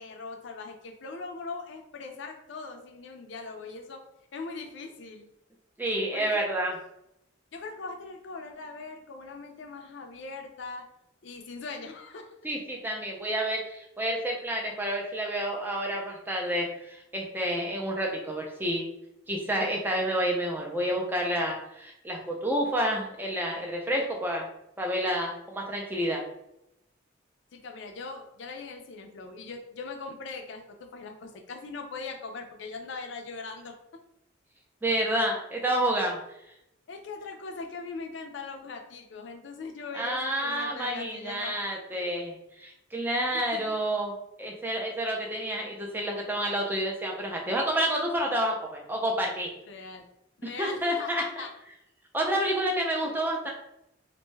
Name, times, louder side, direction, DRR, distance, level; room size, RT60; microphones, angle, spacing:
voice 1, 0.0-4.0 4.3-5.3 6.1-6.4 7.5-10.9 11.2-12.3 27.5-34.0 36.9-41.6 41.9-42.1 43.3-43.8 49.7-50.1 50.4-51.5 52.3-52.6 53.0-53.2, left 4 dB, 65° left, 3 dB, 0.4 m, -40 dB
voice 2, 5.8-6.8 12.4-18.8 19.3-24.5 24.8-26.2 34.8-36.2 39.9-44.1 44.4-49.5 50.4-51.2 52.1-53.5, right 1 dB, 10° right, -1 dB, 0.4 m, -29 dB
2.6 x 2.2 x 3.1 m, 0.82 s
head